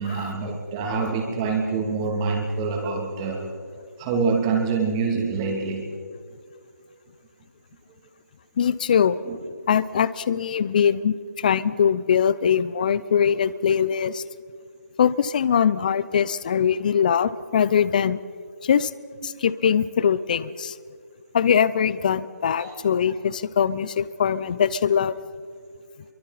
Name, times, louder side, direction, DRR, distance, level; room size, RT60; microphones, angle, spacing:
voice 1, 0.0-3.5 4.0-5.9 9.2-9.4 19.3-19.4 22.6-22.7, right 4 dB, 20° right, 1 dB, 2.7 m, -26 dB
voice 2, 8.6-9.2 9.7-14.2 15.0-18.2 18.6-18.9 19.2-20.7 21.3-25.1, left 7 dB, 30° left, 18 dB, 0.6 m, -22 dB
29.5 x 23.5 x 4.3 m, 2.2 s
figure-of-eight pair, 155°, 9 cm